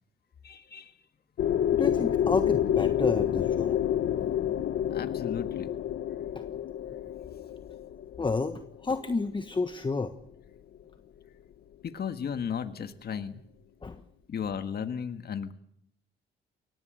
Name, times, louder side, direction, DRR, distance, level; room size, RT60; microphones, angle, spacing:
voice 1, 0.4-0.9 4.9-5.7 11.8-13.4 14.3-15.5, left 7 dB, 55° left, 9 dB, 1.8 m, -35 dB
sound 1, 1.4-9.2, left 10 dB, 70° left, 1.3 m, -28 dB
voice 2, 1.7-3.8 6.3-6.4 8.2-10.1 13.8-14.0, left 4 dB, 25° left, 8 dB, 1.4 m, -30 dB
23.5 x 19.0 x 7.9 m, 0.70 s
cardioid pair, 90°, 20 cm